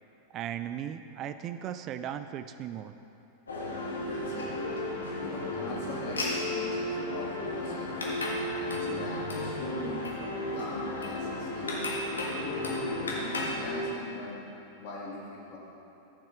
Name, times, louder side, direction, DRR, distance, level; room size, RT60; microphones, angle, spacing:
voice 1, 0.3-2.9, right 10 dB, 35° right, 10 dB, 0.3 m, -37 dB
sound 1, 3.5-13.8, left 1 dB, 75° left, 1.6 m, -33 dB
voice 2, 3.9-4.8 5.2-8.0 8.5-10.1 10.5-12.0 12.4-14.4 14.8-15.2 15.5-15.6, left 2 dB, 50° left, -5 dB, 2.8 m, -41 dB
13.5 x 7.2 x 4.6 m, 2.9 s
figure-of-eight pair, 90°, 0 cm